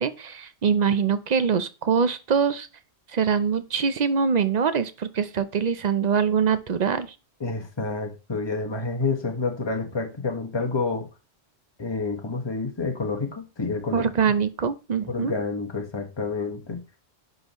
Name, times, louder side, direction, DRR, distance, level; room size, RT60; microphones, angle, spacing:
voice 1, 0.0-2.7 3.1-7.1 13.9-15.3, right 6 dB, 45° right, 0.6 m, -23 dB
voice 2, 7.4-11.1 11.8-14.1 15.1-16.8, left 3 dB, 25° left, 1.2 m, -29 dB
10.5 x 4.0 x 3.0 m
omnidirectional pair, 1.2 m